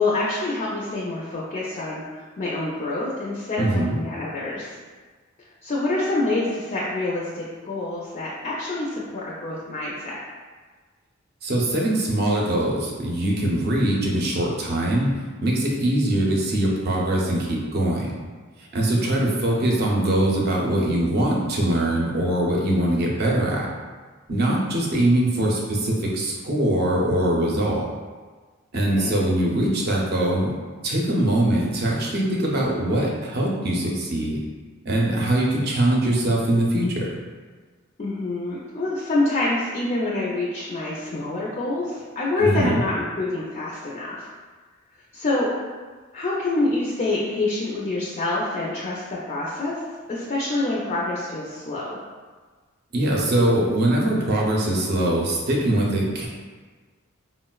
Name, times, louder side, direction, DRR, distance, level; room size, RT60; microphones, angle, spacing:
voice 1, 0.0-4.8 5.6-10.2 19.3-19.4 28.9-29.1 38.0-44.2 45.1-45.7 46.1-49.8 50.1-52.0, left 2 dB, 35° left, -5 dB, 0.4 m, -26 dB
voice 2, 3.6-4.0 11.4-15.1 15.4-18.1 18.6-23.7 24.3-27.8 28.7-30.5 30.8-34.4 34.8-37.1 42.4-42.8 52.9-56.3, right 1 dB, 50° right, -2 dB, 0.5 m, -22 dB
4.3 x 2.0 x 2.3 m, 1.4 s
head